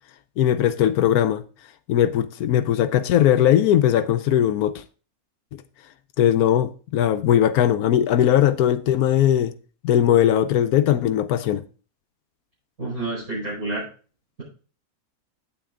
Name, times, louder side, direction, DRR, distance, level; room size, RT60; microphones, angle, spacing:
voice 1, 0.4-1.4 1.9-4.8 5.5-5.6 6.2-9.5 9.8-11.6, left 11 dB, 85° left, 1.1 m, -19 dB
voice 2, 12.8-13.8, right 2 dB, 70° right, 5.9 m, -29 dB
8.9 x 8.6 x 3.8 m
omnidirectional pair, 1.5 m